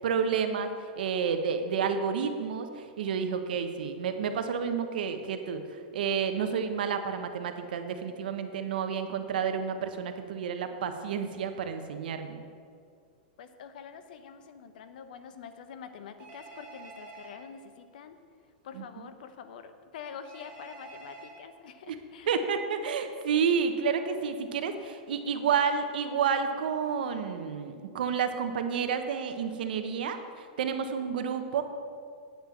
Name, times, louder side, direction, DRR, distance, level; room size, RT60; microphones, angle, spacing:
voice 1, 0.0-12.4 18.7-18.8 21.9-22.0 22.3-31.6, right 6 dB, 80° right, 8 dB, 0.9 m, -30 dB
voice 2, 13.4-18.2 18.6-22.3, left 7 dB, 70° left, 10 dB, 0.8 m, -46 dB
Telephone, 16.2-17.3 20.3-21.3, right 3 dB, 35° right, 2.0 m, -47 dB
8.6 x 5.7 x 7.4 m, 2.2 s
supercardioid pair, 155°, 5 cm